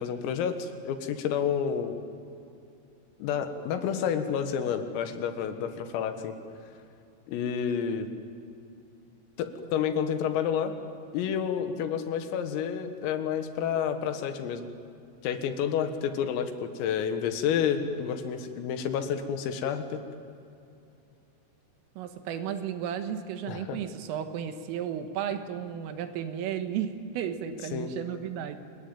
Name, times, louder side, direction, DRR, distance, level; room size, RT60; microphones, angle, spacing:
voice 1, 0.0-2.0 3.2-6.4 7.3-8.1 9.4-10.7 11.1-14.7 15.2-20.0 23.5-23.8 27.7-27.9, left 8 dB, 90° left, 7 dB, 4.3 m, -30 dB
voice 2, 22.0-28.6, right 9 dB, 80° right, 8 dB, 4.0 m, -34 dB
27.0 x 21.5 x 9.0 m, 2.6 s
omnidirectional pair, 5.9 m